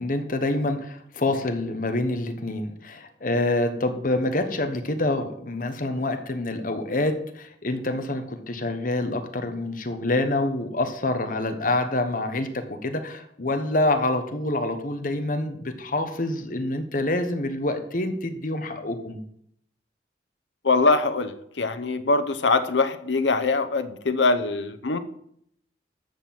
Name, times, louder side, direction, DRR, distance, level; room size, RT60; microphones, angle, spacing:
voice 1, 0.0-19.2, left 2 dB, 50° left, 7 dB, 1.3 m, -26 dB
voice 2, 20.6-25.0, left 3 dB, 90° left, 11 dB, 0.9 m, -23 dB
13.0 x 4.5 x 7.6 m, 0.69 s
head